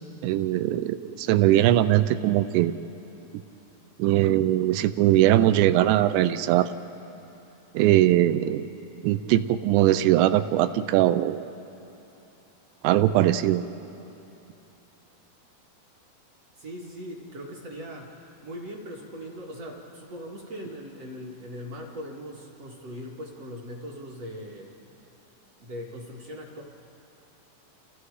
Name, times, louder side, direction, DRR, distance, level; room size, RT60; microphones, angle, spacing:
voice 1, 0.2-2.7 4.0-6.7 7.7-8.6 9.0-11.4 12.8-13.6, right 13 dB, 90° right, 11 dB, 2.9 m, -21 dB
voice 2, 16.6-24.7 25.6-26.6, equal, 50° right, -2 dB, 2.2 m, -40 dB
29.5 x 28.0 x 4.8 m, 2.9 s
omnidirectional pair, 5.0 m